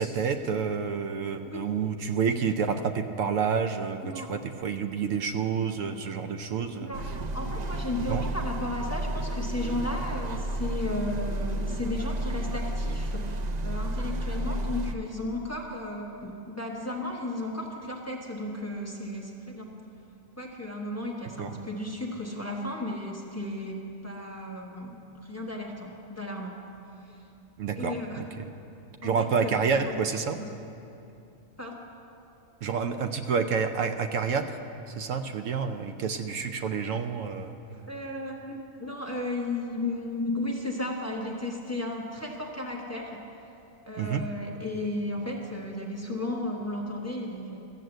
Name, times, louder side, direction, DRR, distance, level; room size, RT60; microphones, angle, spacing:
voice 1, 0.0-6.9 8.1-8.3 21.4-21.6 27.6-28.5 29.0-30.4 32.6-34.6 34.9-37.5 44.0-44.2, right 6 dB, 75° right, 8 dB, 1.0 m, -29 dB
voice 2, 6.7-7.0 7.3-19.7 20.4-26.6 27.1-27.2 27.8-28.2 29.0-29.9 30.4-30.5 31.6-31.8 37.9-43.2 43.8-47.6, left 2 dB, 10° left, -2 dB, 1.1 m, -34 dB
sound 1, 6.9-14.9, right 1 dB, 90° right, 0.3 m, -31 dB
13.5 x 7.6 x 7.7 m, 2.7 s
omnidirectional pair, 1.4 m